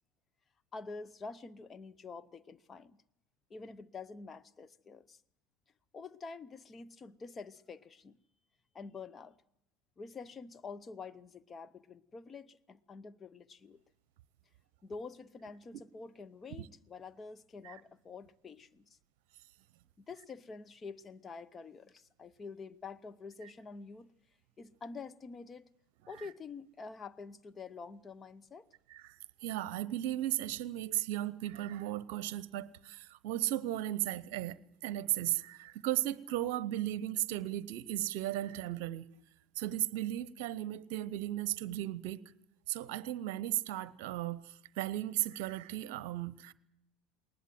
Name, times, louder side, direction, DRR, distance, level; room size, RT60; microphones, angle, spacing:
voice 1, 0.7-3.0 3.5-5.2 5.9-8.2 8.7-9.4 10.0-13.8 14.8-19.0 20.0-24.1 24.6-25.7 26.1-28.7, left 4 dB, 30° left, 0.9 m, -47 dB
voice 2, 28.9-39.1 39.6-42.2 42.7-46.5, right 14 dB, 65° right, 0.8 m, -36 dB
21.0 x 19.5 x 7.7 m
hypercardioid pair, 75°, 0 cm